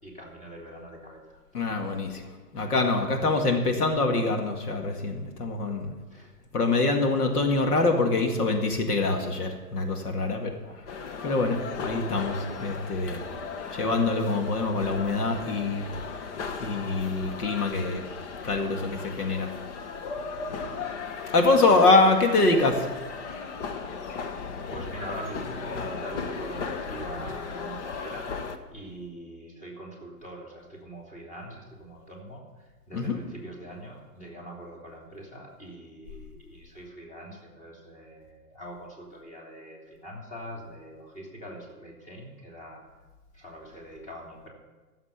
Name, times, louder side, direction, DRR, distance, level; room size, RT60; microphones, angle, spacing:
voice 1, 0.0-1.9 6.1-6.3 10.6-10.8 20.6-20.8 21.2-21.8 24.1-28.3 28.7-32.4 32.9-42.8 43.3-44.5, equal, 15° left, -1 dB, 3.0 m, -43 dB
voice 2, 1.5-5.9 6.5-10.9 11.2-13.2 13.7-15.9 16.6-18.0 18.4-19.5 21.3-22.9 32.9-33.2, left 3 dB, 75° left, 3 dB, 2.1 m, -25 dB
sound 1, 10.9-28.6, left 5 dB, 50° left, 1.2 m, -36 dB
15.0 x 7.3 x 6.9 m, 1.2 s
hypercardioid pair, 135°, 46 cm